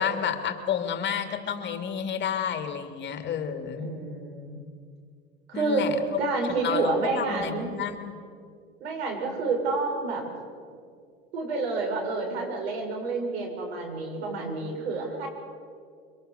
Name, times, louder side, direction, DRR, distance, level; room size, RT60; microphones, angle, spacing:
voice 1, 0.0-3.9 5.5-6.2 6.6-8.2, left 7 dB, 35° left, 6 dB, 2.9 m, -30 dB
voice 2, 3.8-4.6 5.5-5.9 6.2-7.7 8.8-10.2 11.3-15.3, right 3 dB, 75° right, 1 dB, 7.5 m, -29 dB
26.0 x 24.5 x 7.0 m, 2.2 s
hypercardioid pair, 95°, 32 cm